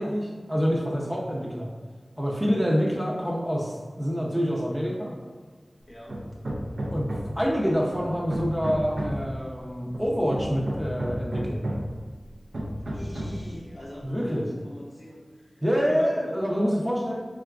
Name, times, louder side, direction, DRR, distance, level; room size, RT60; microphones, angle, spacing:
voice 1, 0.0-1.7 2.2-5.1 6.9-7.1 7.4-11.6 14.0-14.4 15.6-17.3, equal, 10° right, -3 dB, 0.5 m, -26 dB
voice 2, 5.9-6.2 12.9-16.4, equal, 35° left, -3 dB, 0.6 m, -42 dB
Hammer, 6.1-7.5 7.9-9.3 9.9-12.0 12.5-13.5, equal, 75° right, 0.4 m, -32 dB
3.6 x 2.3 x 2.3 m, 1.5 s
wide cardioid pair, 65°, 0 cm